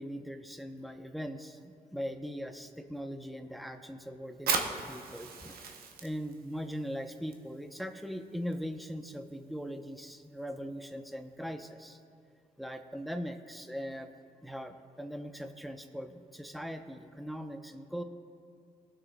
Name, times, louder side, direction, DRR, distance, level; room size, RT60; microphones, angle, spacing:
voice 1, 0.0-12.0 12.6-14.1 14.4-18.0, equal, ahead, 6 dB, 0.7 m, -40 dB
Fire, 4.3-11.5, right 5 dB, 85° right, 0.8 m, -40 dB
18.5 x 6.3 x 2.2 m, 2.6 s
cardioid pair, 65°, 15 cm